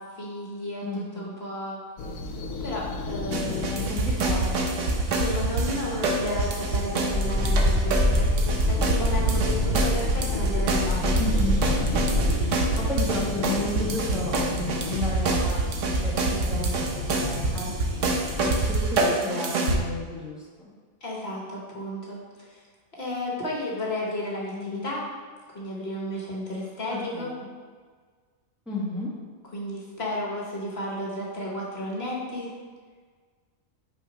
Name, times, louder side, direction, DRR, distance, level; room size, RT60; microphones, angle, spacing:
voice 1, 0.0-1.8 2.6-3.7 5.0-11.1 21.0-22.6 22.9-25.1 25.5-27.3 29.5-32.5, left 1 dB, 50° left, -3 dB, 1.3 m, -33 dB
voice 2, 0.8-1.4 3.6-4.8 11.2-11.6 12.8-16.1 16.5-17.8 18.4-20.7 24.4-24.9 26.9-27.5 28.7-29.1, left 2 dB, ahead, -6 dB, 1.2 m, -33 dB
sound 1, 2.0-18.8, left 3 dB, 80° left, 1.2 m, -33 dB
sound 2, 3.3-19.8, right 3 dB, 65° right, 1.1 m, -26 dB
sound 3, 7.1-12.3, left 1 dB, 50° right, 1.7 m, -25 dB
5.8 x 4.0 x 5.1 m, 1.6 s
omnidirectional pair, 1.4 m